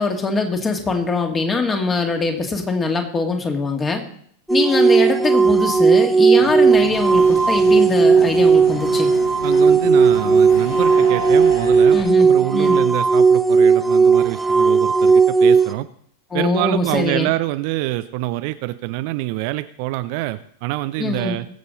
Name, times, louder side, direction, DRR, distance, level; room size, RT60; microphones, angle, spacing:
voice 1, 0.0-4.0 4.5-9.1 11.9-12.8 16.3-17.3 21.0-21.4, left 3 dB, 20° left, 4 dB, 2.2 m, -22 dB
sound 1, 4.5-15.7, right 5 dB, ahead, 0.8 m, -15 dB
sound 2, 6.4-12.0, right 1 dB, 75° left, 6.4 m, -32 dB
voice 2, 9.4-15.9 16.3-21.5, right 17 dB, 45° right, 12 dB, 0.5 m, -26 dB
21.0 x 7.9 x 4.0 m, 0.62 s
figure-of-eight pair, 90°, 0 cm